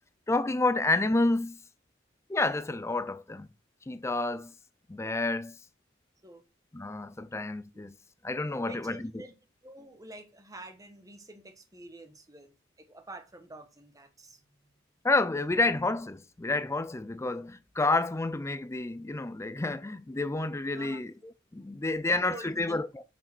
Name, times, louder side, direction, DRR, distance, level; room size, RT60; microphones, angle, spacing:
voice 1, 0.3-1.6 2.3-3.5 3.9-4.5 4.9-5.6 6.7-8.0 8.2-9.0 15.0-21.1 21.5-23.0, left 2 dB, 15° left, 0.4 m, -29 dB
voice 2, 8.5-9.3 9.6-14.4 20.7-21.0 21.7-22.8, right 1 dB, 15° right, 1.3 m, -48 dB
6.6 x 6.4 x 6.0 m
head